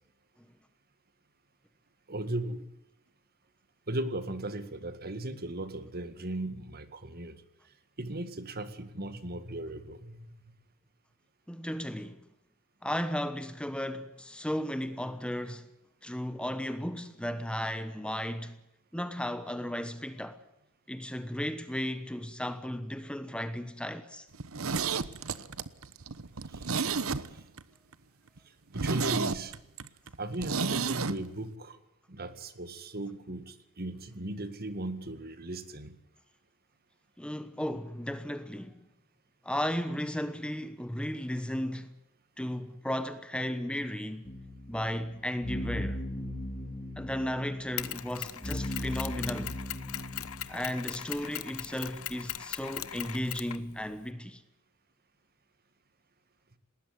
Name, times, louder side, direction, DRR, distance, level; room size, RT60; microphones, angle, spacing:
voice 1, 2.1-2.7 3.9-7.4 8.0-10.5 26.5-26.6 27.3-27.4 28.7-29.5 30.2-31.8 32.1-36.0, right 1 dB, 45° right, 2.0 m, -37 dB
voice 2, 11.5-12.2 12.8-15.7 16.0-18.6 18.9-20.4 20.9-24.2 37.2-38.8 39.4-41.9 42.4-44.3 44.7-46.0 47.0-49.6 50.5-54.4, equal, 5° left, 1.1 m, -35 dB
Zipper (clothing), 24.3-27.6 27.9-28.0 28.4-28.5 28.7-31.2 31.4-31.5, right 5 dB, 65° right, 1.1 m, -31 dB
sound 1, 44.2-50.5, left 1 dB, 30° left, 3.6 m, -38 dB
Mechanisms, 47.8-54.1, left 11 dB, 70° left, 1.1 m, -40 dB
19.5 x 19.5 x 9.5 m
head